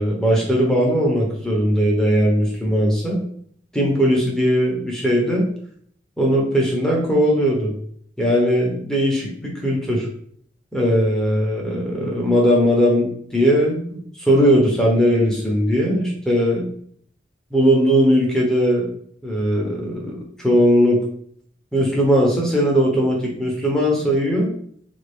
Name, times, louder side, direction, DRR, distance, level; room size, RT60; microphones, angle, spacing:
voice 1, 0.0-3.2 3.7-5.5 6.2-7.7 8.2-10.1 10.7-16.7 17.5-18.8 19.2-21.0 21.7-24.5, equal, 5° left, -2 dB, 0.7 m, -19 dB
3.6 x 2.6 x 3.4 m, 0.63 s
head